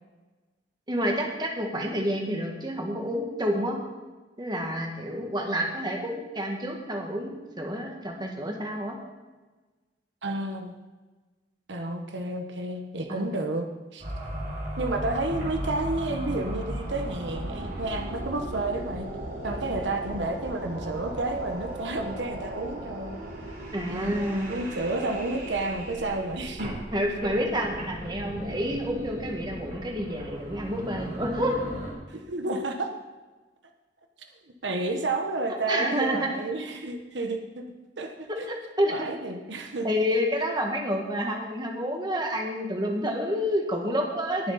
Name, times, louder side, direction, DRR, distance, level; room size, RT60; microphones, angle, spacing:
voice 1, 0.9-3.8 4.4-9.0 13.1-13.3 23.7-24.6 26.9-31.6 35.7-36.3 38.5-38.9 39.8-44.5, equal, 25° right, 0 dB, 2.0 m, -29 dB
voice 2, 10.2-10.7 11.7-13.7 13.9-14.0 14.8-19.1 19.4-23.2 23.9-26.7 32.1-32.9 34.5-38.5 38.9-39.9, right 2 dB, 90° right, 5 dB, 1.2 m, -31 dB
sound 1, 14.0-31.9, right 1 dB, 55° right, 4.4 m, -36 dB
20.0 x 7.5 x 4.2 m, 1.2 s
head